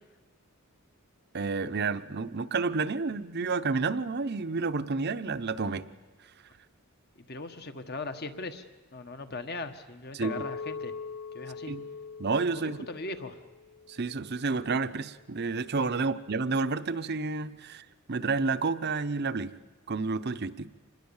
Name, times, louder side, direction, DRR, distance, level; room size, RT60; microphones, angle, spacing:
voice 1, 1.3-5.9 10.1-10.3 11.7-11.8 12.2-12.8 13.9-19.5 19.9-20.7, right 4 dB, 50° right, 12 dB, 0.8 m, -30 dB
voice 2, 7.3-8.6 8.9-10.9 11.3-11.7 12.5-13.4 15.9-16.1, left 3 dB, 50° left, 8 dB, 1.5 m, -39 dB
Chink clink, 10.2-14.5, left 5 dB, 70° left, 1.0 m, -42 dB
26.5 x 20.5 x 7.2 m, 1.3 s
head